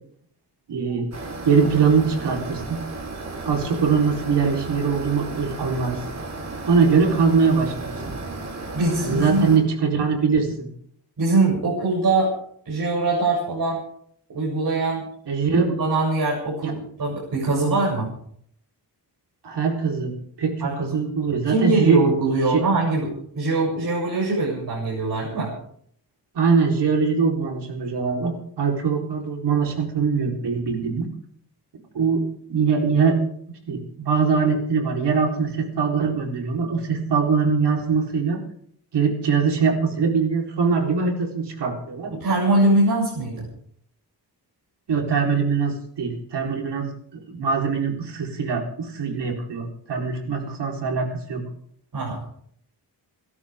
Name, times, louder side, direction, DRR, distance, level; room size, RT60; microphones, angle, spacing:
voice 1, 0.7-2.8 3.4-6.0 6.7-7.9 9.0-10.7 15.3-15.7 16.6-16.7 19.4-20.1 20.4-22.0 22.5-22.6 26.3-31.1 31.9-32.2 32.5-33.2 33.7-38.4 38.9-42.1 44.9-51.4, right 5 dB, 80° right, 2 dB, 4.2 m, -22 dB
sound 1, 1.1-9.6, right 2 dB, 40° right, 4.2 m, -34 dB
voice 2, 8.7-9.5 11.2-12.3 12.7-13.8 14.3-15.0 15.4-18.1 20.6-20.9 21.4-25.5 42.1-43.5 51.9-52.2, right 2 dB, 55° right, -5 dB, 7.6 m, -22 dB
29.5 x 13.0 x 3.7 m, 0.63 s
wide cardioid pair, 140°, 41 cm